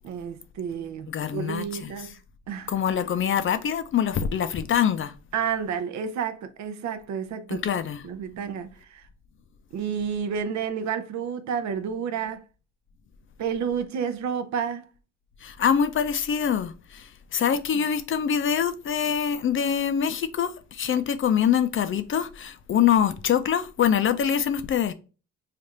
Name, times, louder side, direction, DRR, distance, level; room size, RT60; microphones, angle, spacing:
voice 1, 0.0-2.1 2.5-2.8 5.3-7.8 8.0-9.0 9.7-12.4 13.4-14.9 17.7-17.8, right 7 dB, 65° right, 0.6 m, -30 dB
voice 2, 1.1-1.9 2.7-5.1 7.5-8.0 15.4-24.9, left 8 dB, 45° left, 0.5 m, -24 dB
3.3 x 2.4 x 4.1 m
cardioid pair, 90°, 30 cm